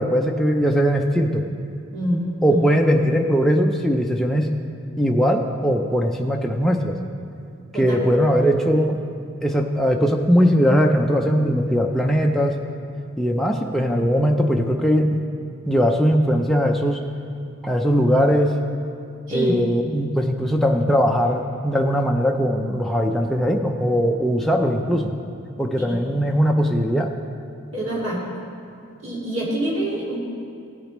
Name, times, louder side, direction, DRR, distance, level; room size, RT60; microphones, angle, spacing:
voice 1, 0.0-1.4 2.4-4.5 5.0-7.0 7.7-9.0 9.4-12.6 13.2-15.2 15.7-17.0 17.6-18.6 19.3-25.1 25.6-27.1, equal, ahead, 1 dB, 0.4 m, -20 dB
voice 2, 1.9-2.7 7.7-8.1 19.3-19.5 25.8-26.0 27.7-28.2 29.0-30.2, right 1 dB, 65° right, -5 dB, 2.3 m, -26 dB
16.5 x 8.4 x 3.1 m, 2.4 s
head